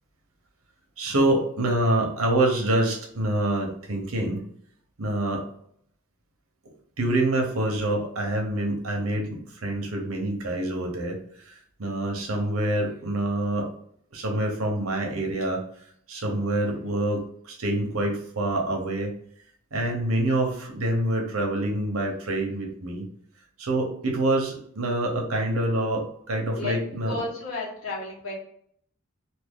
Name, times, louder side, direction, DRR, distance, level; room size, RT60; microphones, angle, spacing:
voice 1, 1.0-4.4 5.0-5.4 7.0-13.7 14.1-15.6 16.1-19.1 19.7-23.1 23.6-27.1, right 1 dB, 80° right, 1 dB, 0.9 m, -26 dB
voice 2, 27.0-28.3, left 3 dB, 85° left, -5 dB, 1.4 m, -32 dB
2.8 x 2.6 x 3.6 m, 0.65 s
head